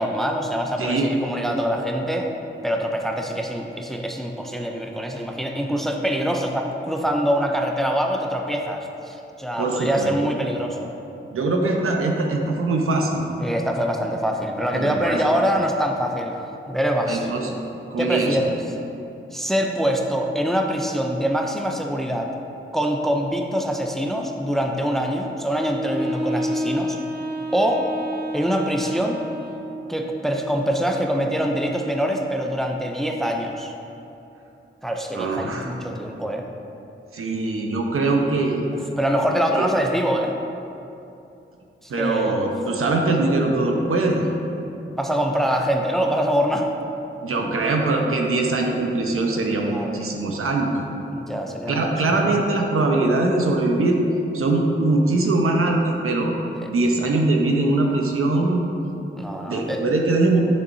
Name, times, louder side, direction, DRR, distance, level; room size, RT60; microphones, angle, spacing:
voice 1, 0.0-2.3 2.6-10.9 13.4-17.3 18.0-18.6 19.3-22.3 22.7-27.0 27.5-27.9 28.3-29.2 29.9-33.7 34.8-36.5 39.0-40.3 41.8-42.3 44.9-46.7 49.6-49.9 51.1-52.3 56.5-56.7 59.1-59.8, equal, ahead, 2 dB, 0.5 m, -24 dB
voice 2, 0.8-1.1 9.6-10.1 11.3-13.2 14.7-15.2 17.1-17.6 17.9-18.4 35.1-35.7 37.1-38.7 39.5-39.6 41.9-44.2 47.2-50.7 51.7-54.0 54.3-56.3 56.7-58.6 59.4-60.4, right 2 dB, 90° right, 1 dB, 0.9 m, -22 dB
Wind instrument woodwind instrument, 25.8-29.9, equal, 50° right, 0.8 m, -30 dB
9.9 x 6.8 x 2.7 m, 2.8 s
wide cardioid pair, 145°, 21 cm